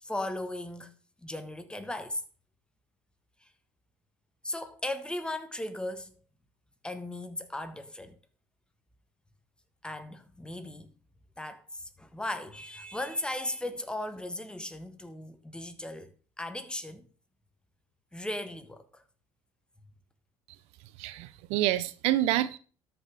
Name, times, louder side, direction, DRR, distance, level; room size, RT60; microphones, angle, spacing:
voice 1, 0.0-0.9 1.2-2.2 3.4-3.5 4.4-6.1 6.8-8.2 9.8-10.9 11.4-17.1 18.1-19.0, left 1 dB, 10° left, 1.4 m, -37 dB
voice 2, 21.0-22.6, right 14 dB, 75° right, 0.6 m, -27 dB
13.0 x 5.9 x 3.4 m
supercardioid pair, 75°, 11 cm